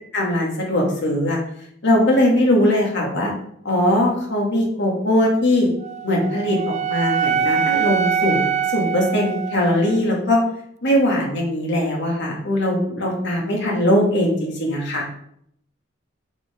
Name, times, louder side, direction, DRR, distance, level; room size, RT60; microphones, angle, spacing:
voice 1, 0.1-1.4 1.8-3.3 3.6-5.7 6.0-10.4 10.8-15.1, left 1 dB, 60° left, -1 dB, 2.4 m, -20 dB
Wind instrument woodwind instrument, 5.8-10.0, right 7 dB, 35° right, 0.3 m, -23 dB
7.6 x 6.3 x 3.8 m, 0.68 s
head